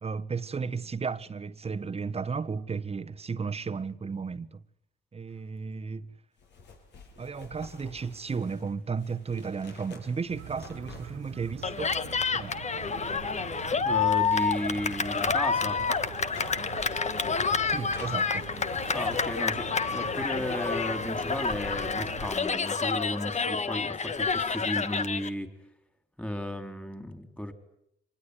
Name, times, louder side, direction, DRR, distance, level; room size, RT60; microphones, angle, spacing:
voice 1, 0.0-4.6 5.1-6.1 7.2-11.9 12.3-12.5 17.6-18.5, right 5 dB, 30° right, 1.3 m, -34 dB
sound 1, 6.4-12.6 14.2-20.5 20.9-21.0, left 3 dB, 60° left, 7.6 m, -47 dB
sound 2, 10.3-22.3, right 14 dB, 90° right, 1.0 m, -44 dB
Cheering, 11.6-25.3, left 5 dB, 35° left, 1.5 m, -29 dB
voice 2, 13.7-15.8 18.9-25.5 26.2-27.5, left 1 dB, 5° left, 4.1 m, -34 dB
25.5 x 20.5 x 10.0 m
cardioid pair, 90°, 20 cm